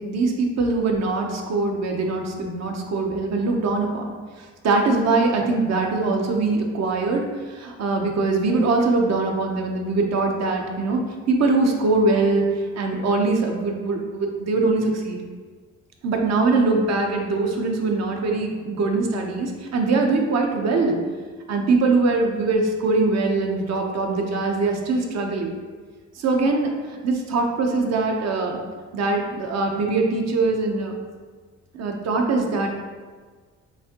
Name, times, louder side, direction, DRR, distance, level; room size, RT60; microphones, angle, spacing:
voice 1, 0.0-4.0 4.4-12.5 12.8-15.2 16.0-21.0 21.5-25.6 26.2-28.6 28.9-30.9 31.7-32.7, right 3 dB, 60° right, 2 dB, 0.8 m, -22 dB
6.2 x 2.6 x 2.9 m, 1.5 s
cardioid pair, 90°, 30 cm